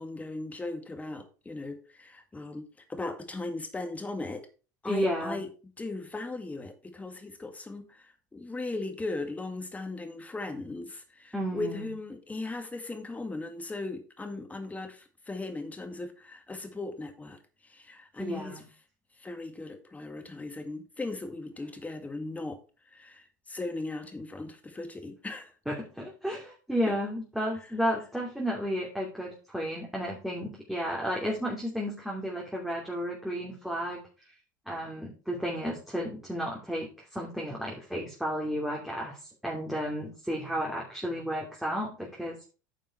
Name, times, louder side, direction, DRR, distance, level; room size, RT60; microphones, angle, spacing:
voice 1, 0.0-4.5 4.8-5.5 5.8-18.6 19.2-22.6 22.9-25.5, left 2 dB, 15° left, 6 dB, 2.2 m, -38 dB
voice 2, 4.8-5.4 11.3-11.9 18.2-18.6 25.7-34.0 34.7-42.5, equal, 5° right, -3 dB, 2.9 m, -32 dB
10.0 x 5.4 x 4.6 m, 0.35 s
hypercardioid pair, 85°, 10 cm